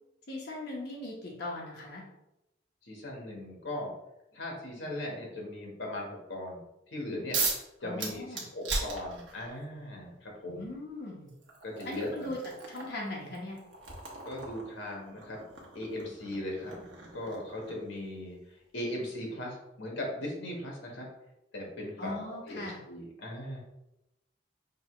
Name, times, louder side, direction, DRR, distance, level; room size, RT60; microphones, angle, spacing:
voice 1, 0.3-2.0 7.8-8.4 10.5-11.3 11.8-12.4 12.7-13.6 22.0-22.8, left 2 dB, 60° left, -3 dB, 1.2 m, -39 dB
voice 2, 2.8-3.9 4.3-7.4 7.8-10.6 11.6-12.3 14.2-15.4 15.7-16.7 17.1-21.1 21.5-23.6, left 1 dB, 75° left, -1 dB, 1.4 m, -38 dB
sound 1, 7.3-7.7 8.0-9.6 10.7-10.8 11.3-17.9, right 4 dB, 70° right, 1.0 m, -38 dB
5.4 x 2.4 x 3.1 m, 0.90 s
head